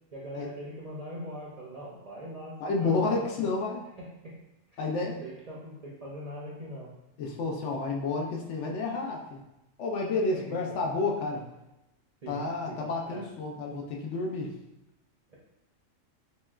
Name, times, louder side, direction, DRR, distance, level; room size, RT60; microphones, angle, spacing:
voice 1, 0.1-3.2 4.0-4.4 4.7-6.9 10.3-10.8 12.2-13.2 15.3-15.4, equal, 50° right, -6 dB, 0.5 m, -42 dB
voice 2, 2.6-3.8 4.8-5.1 7.2-9.4 9.8-11.4 12.3-14.5, left 3 dB, 70° left, 0 dB, 0.9 m, -30 dB
5.9 x 2.2 x 2.3 m, 0.94 s
omnidirectional pair, 1.3 m